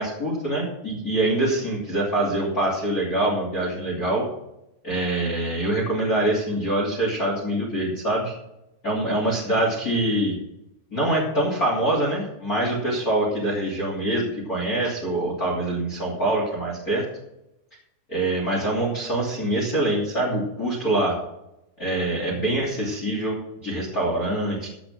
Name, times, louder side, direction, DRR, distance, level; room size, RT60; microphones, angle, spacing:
voice 1, 0.0-4.3 4.8-8.3 8.8-10.3 10.9-17.0 18.1-21.1 21.8-24.7, right 1 dB, 25° left, -3 dB, 2.7 m, -24 dB
15.0 x 5.2 x 7.3 m, 0.86 s
omnidirectional pair, 4.8 m